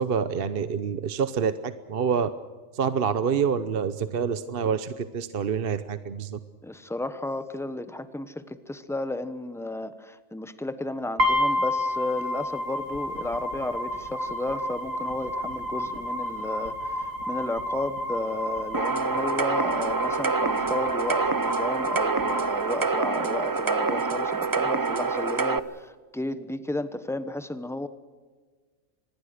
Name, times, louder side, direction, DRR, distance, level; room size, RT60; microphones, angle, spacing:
voice 1, 0.0-2.3 2.7-6.4, right 6 dB, 50° right, 13 dB, 1.0 m, -27 dB
voice 2, 6.6-27.9, left 2 dB, ahead, 12 dB, 0.9 m, -33 dB
sound 1, 11.2-23.2, left 1 dB, 80° right, 3.3 m, -30 dB
sound 2, 18.7-25.6, right 4 dB, 30° right, 0.4 m, -26 dB
25.5 x 20.5 x 6.6 m, 1.5 s
omnidirectional pair, 1.4 m